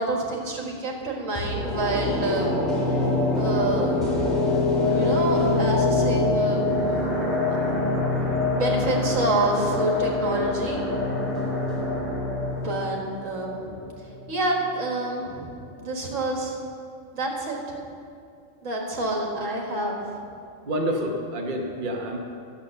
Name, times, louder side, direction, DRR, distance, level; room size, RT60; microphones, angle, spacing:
voice 1, 0.0-2.6 3.3-4.3 4.9-7.1 8.6-11.2 12.6-13.8 14.3-16.6 17.1-17.8 18.6-20.0, right 2 dB, 65° right, -1 dB, 2.0 m, -28 dB
sound 1, 1.3-14.4 14.8-14.9, left 2 dB, ahead, 2.7 m, -26 dB
sound 2, 2.0-8.6, left 5 dB, 70° left, 1.0 m, -29 dB
voice 2, 20.7-22.2, equal, 40° right, 0 dB, 1.1 m, -28 dB
11.5 x 7.4 x 6.6 m, 2.4 s
omnidirectional pair, 1.4 m